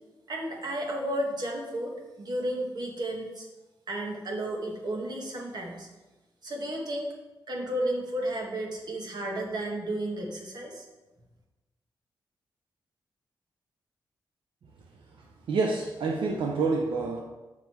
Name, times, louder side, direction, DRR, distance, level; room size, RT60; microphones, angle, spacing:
voice 1, 0.3-3.5 3.9-5.9 6.4-7.1 7.5-10.8, right 1 dB, 55° right, 0 dB, 1.7 m, -33 dB
voice 2, 15.5-17.2, right 4 dB, 85° right, 1 dB, 0.7 m, -27 dB
7.4 x 5.6 x 4.6 m, 1.1 s
cardioid pair, 85°, 8 cm